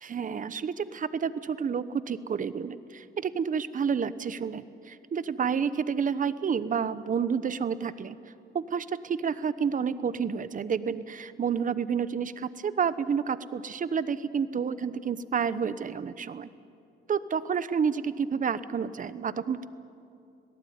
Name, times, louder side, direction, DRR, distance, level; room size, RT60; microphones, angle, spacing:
voice 1, 0.0-8.2 8.5-16.5 17.1-19.7, right 6 dB, 40° right, 15 dB, 1.0 m, -30 dB
26.5 x 18.0 x 9.5 m, 2.5 s
cardioid pair, 90°, 20 cm